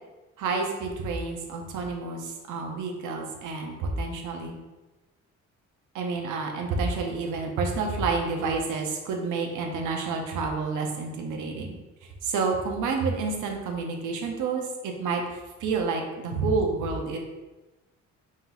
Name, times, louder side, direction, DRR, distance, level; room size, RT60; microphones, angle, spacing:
voice 1, 0.4-4.5 5.9-11.7 12.2-17.2, right 4 dB, 85° right, 2 dB, 0.8 m, -29 dB
4.2 x 3.9 x 2.4 m, 1.1 s
cardioid pair, 90°, 30 cm